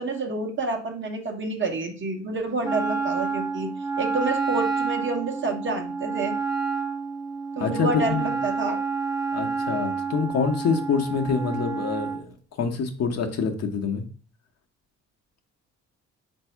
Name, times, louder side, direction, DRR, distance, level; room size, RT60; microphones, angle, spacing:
voice 1, 0.0-3.7 4.0-6.3 7.5-8.8, right 3 dB, 40° right, 3 dB, 1.0 m, -29 dB
Wind instrument woodwind instrument, 2.6-12.2, right 4 dB, 10° right, 0.6 m, -29 dB
voice 2, 7.6-8.3 9.3-14.0, left 5 dB, 55° left, 3 dB, 0.8 m, -26 dB
4.0 x 2.7 x 4.4 m, 0.38 s
cardioid pair, 90°, 30 cm